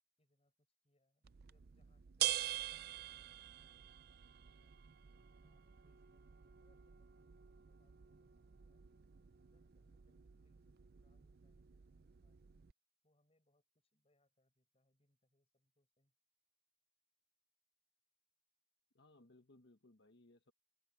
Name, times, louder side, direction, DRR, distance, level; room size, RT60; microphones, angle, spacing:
voice 1, 0.2-4.8 5.3-8.9 9.5-12.4 13.0-16.1, left 1 dB, 30° left, 6.5 m, -82 dB
sound 1, 1.2-12.7, right 13 dB, 50° right, 0.5 m, -46 dB
voice 2, 18.9-20.5, left 2 dB, 60° left, 1.2 m, -65 dB
head